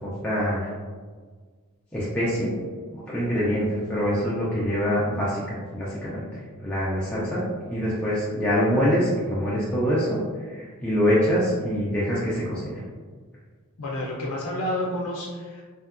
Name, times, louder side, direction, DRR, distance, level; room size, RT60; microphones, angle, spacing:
voice 1, 0.0-0.7 1.9-2.5 3.1-6.3 6.6-7.4 7.7-10.2 10.5-12.8, equal, 5° left, -9 dB, 0.4 m, -24 dB
voice 2, 13.8-15.6, left 1 dB, 85° left, -4 dB, 0.4 m, -29 dB
2.7 x 2.2 x 2.4 m, 1.5 s
head